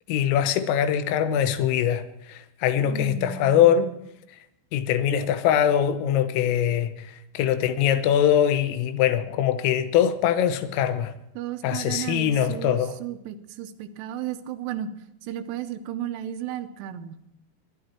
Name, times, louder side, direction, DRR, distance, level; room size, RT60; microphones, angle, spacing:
voice 1, 0.1-2.0 2.3-3.9 4.7-11.2 11.6-12.9, left 9 dB, 90° left, 3.6 m, -22 dB
voice 2, 2.8-3.9 11.4-14.9 15.2-17.2, right 10 dB, 80° right, 3.2 m, -34 dB
21.5 x 11.0 x 4.3 m
omnidirectional pair, 5.7 m